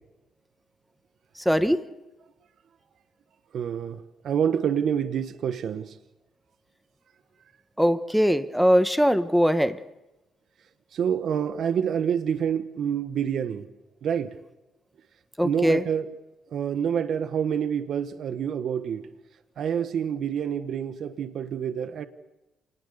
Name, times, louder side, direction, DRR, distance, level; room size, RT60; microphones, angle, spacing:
voice 1, 1.4-1.8 7.8-9.8 15.4-15.8, equal, ahead, 1.2 m, -21 dB
voice 2, 3.5-6.0 10.9-13.7 14.0-14.4 15.4-16.1 16.5-19.1 19.6-22.1, right 8 dB, 65° right, 1.3 m, -27 dB
27.0 x 19.5 x 6.8 m
cardioid pair, 90°, 0 cm